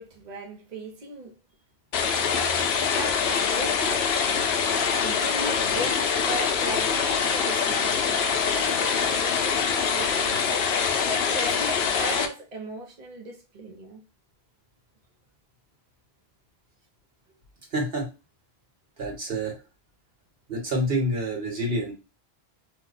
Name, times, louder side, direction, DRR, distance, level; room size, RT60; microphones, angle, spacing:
voice 1, 0.0-1.3 2.7-4.1 4.8-14.0, right 2 dB, 45° right, 0.7 m, -38 dB
sound 1, 1.9-12.3, left 6 dB, 90° left, 0.8 m, -24 dB
voice 2, 17.7-18.1 19.0-19.5 20.5-21.9, right 1 dB, 65° right, 1.4 m, -27 dB
2.8 x 2.1 x 3.9 m
omnidirectional pair, 1.1 m